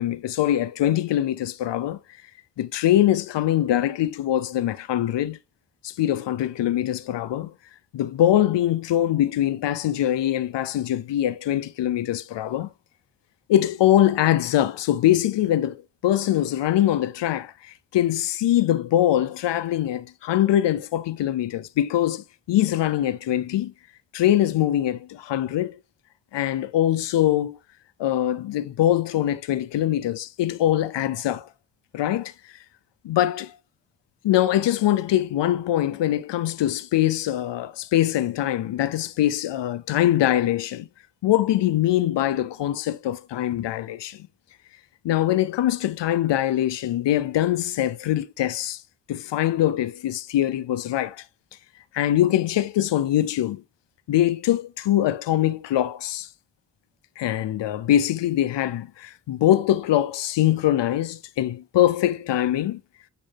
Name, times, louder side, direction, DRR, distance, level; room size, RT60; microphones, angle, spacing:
voice 1, 0.0-2.0 2.6-5.4 5.8-7.5 7.9-12.7 13.5-23.7 24.1-25.7 26.3-27.6 28.0-31.5 31.9-32.3 33.0-33.5 34.2-40.9 41.2-44.3 45.0-48.8 49.1-51.2 51.9-53.6 54.1-56.3 57.2-62.8, left 12 dB, 80° left, 0.8 m, -23 dB
8.9 x 3.1 x 3.5 m
supercardioid pair, 45°, 42 cm